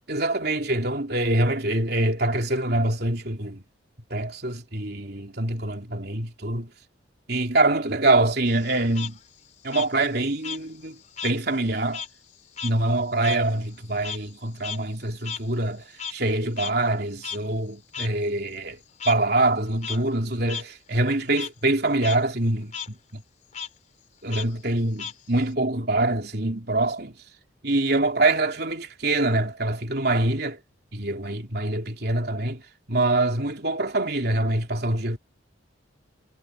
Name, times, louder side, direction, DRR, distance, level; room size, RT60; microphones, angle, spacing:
voice 1, 0.1-3.6 4.1-6.7 7.3-9.2 9.6-12.0 12.6-23.2 24.2-27.2 27.6-30.6 30.9-35.2, right 2 dB, 50° right, 3.5 m, -25 dB
Frog, 8.5-11.4 11.7-16.3 16.6-16.7 17.2-17.4 17.9-18.1 19.0-19.1 19.7-20.0 20.5-20.6 21.0-21.5 21.9-22.2 22.5-22.9 23.5-23.7 24.3-25.5, left 7 dB, 35° left, 4.0 m, -36 dB
head